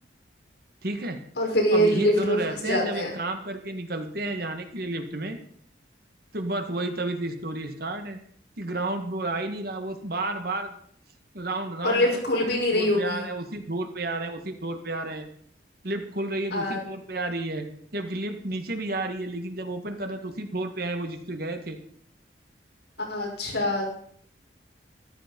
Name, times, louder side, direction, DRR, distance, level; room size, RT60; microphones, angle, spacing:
voice 1, 0.8-1.2 1.7-5.4 6.3-8.2 8.6-10.7 11.3-12.1 12.7-15.3 15.8-17.7 17.9-21.8, right 2 dB, 55° right, 6 dB, 1.8 m, -31 dB
voice 2, 1.4-3.1 11.8-13.2 16.5-16.8 23.0-23.8, left 1 dB, 70° left, -2 dB, 5.8 m, -24 dB
13.5 x 12.5 x 5.4 m, 0.62 s
head